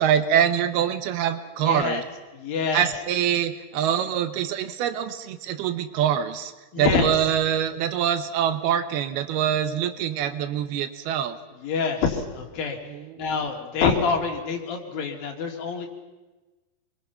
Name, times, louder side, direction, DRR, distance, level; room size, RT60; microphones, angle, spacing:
voice 1, 0.0-2.0 2.7-11.4 12.9-13.2, right 9 dB, 75° right, 10 dB, 2.9 m, -24 dB
voice 2, 1.6-2.0 2.4-2.9 6.7-7.1 11.6-12.8 13.2-15.9, left 5 dB, 65° left, 2 dB, 4.0 m, -26 dB
26.0 x 22.5 x 5.7 m, 1.2 s
omnidirectional pair, 4.7 m